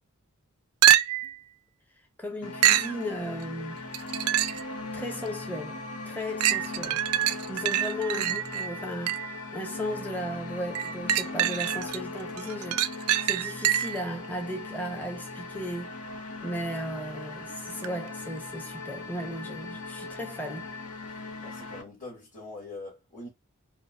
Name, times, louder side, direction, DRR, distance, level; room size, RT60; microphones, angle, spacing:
sound 1, 0.8-1.4 2.6-3.0 3.9-4.7 5.3-5.4 6.4-9.4 10.8-12.0 12.4-14.1 17.8-17.9, right 12 dB, 75° right, 0.3 m, -25 dB
voice 1, 2.2-3.8 4.9-7.0 7.5-9.2 9.5-15.9 16.4-20.7, equal, 10° left, 0.6 m, -36 dB
sound 2, 2.4-21.8, left 3 dB, 85° left, 0.8 m, -39 dB
voice 2, 21.1-23.3, left 2 dB, 35° left, 1.6 m, -43 dB
4.5 x 2.1 x 2.2 m
head